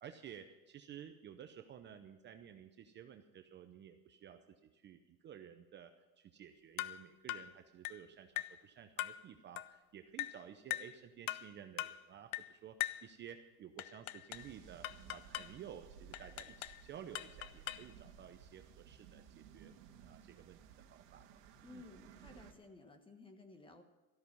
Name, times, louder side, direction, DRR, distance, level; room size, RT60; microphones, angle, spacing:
voice 1, 0.0-4.4 4.7-19.7 20.0-20.6 20.9-21.3 21.7-21.8, right 9 dB, 25° right, 6 dB, 0.8 m, -54 dB
sound 1, 6.8-7.0 7.3-7.5 7.8-8.0 8.4-8.6 9.0-9.2 9.6-9.7 10.2-10.4 10.7-10.9 11.3-11.5 11.8-12.0 12.3-12.5 12.8-13.1 13.8-14.5 14.8-15.5 16.1-16.8 17.1-17.9, left 16 dB, 70° left, 0.7 m, -41 dB
sound 2, 14.3-22.5, right 8 dB, 55° right, 2.0 m, -58 dB
voice 2, 21.6-23.8, left 3 dB, 10° left, 7 dB, 1.3 m, -56 dB
13.5 x 12.5 x 5.5 m, 1.2 s
supercardioid pair, 135°, 44 cm